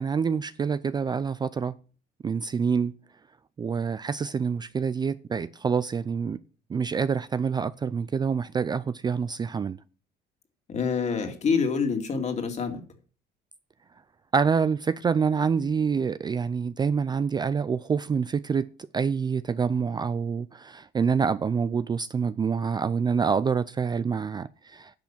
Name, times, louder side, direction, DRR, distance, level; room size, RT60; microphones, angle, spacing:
voice 1, 0.0-1.7 2.2-2.9 3.6-6.4 6.7-9.8 14.3-18.7 18.9-24.9, right 6 dB, 25° right, 0.4 m, -26 dB
voice 2, 10.7-12.8, left 5 dB, 40° left, 2.4 m, -26 dB
10.5 x 5.9 x 7.3 m
cardioid pair, 110°, 17 cm